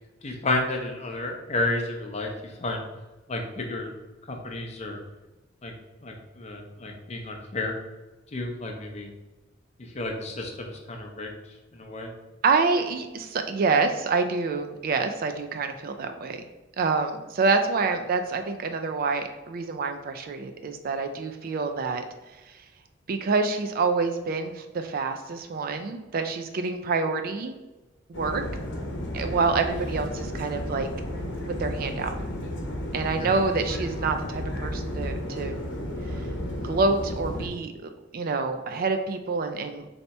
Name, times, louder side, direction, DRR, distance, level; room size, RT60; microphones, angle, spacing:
voice 1, 0.2-2.8 3.3-3.9 4.2-5.0 5.6-5.7 6.0-7.8 8.3-9.1 9.8-12.1 33.2-33.3, left 2 dB, 35° left, 2 dB, 0.6 m, -32 dB
voice 2, 12.4-16.4 16.8-22.0 22.5-22.6 23.1-27.5 28.1-28.4 29.1-31.2 31.5-32.1 32.9-35.5 36.1-36.2 36.6-39.9, right 4 dB, 50° right, 7 dB, 0.3 m, -27 dB
sound 1, 28.1-37.5, left 1 dB, 65° left, 0.8 m, -33 dB
3.3 x 2.8 x 4.1 m, 1.1 s
head